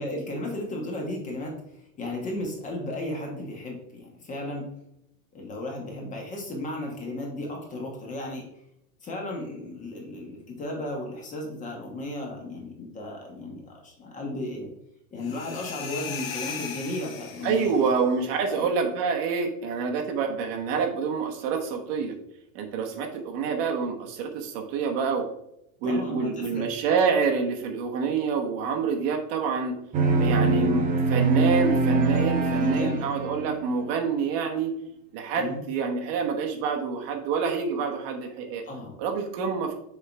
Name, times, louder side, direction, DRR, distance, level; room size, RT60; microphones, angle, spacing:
voice 1, 0.0-1.6 2.0-4.7 5.3-8.5 9.0-14.7 15.1-17.7 18.4-18.7 25.8-26.7 32.5-33.1 35.4-35.6 38.6-38.9, left 1 dB, 20° left, 0 dB, 1.2 m, -34 dB
sound 1, 15.2-17.9, left 7 dB, 75° left, 1.7 m, -37 dB
voice 2, 17.4-22.1 22.5-25.2 25.8-29.8 30.2-34.7 35.1-38.6 39.0-39.7, right 5 dB, 45° right, 3 dB, 1.1 m, -27 dB
sound 2, 29.9-33.7, right 3 dB, 20° right, 0.7 m, -23 dB
6.6 x 3.6 x 4.5 m, 0.80 s
supercardioid pair, 155°, 41 cm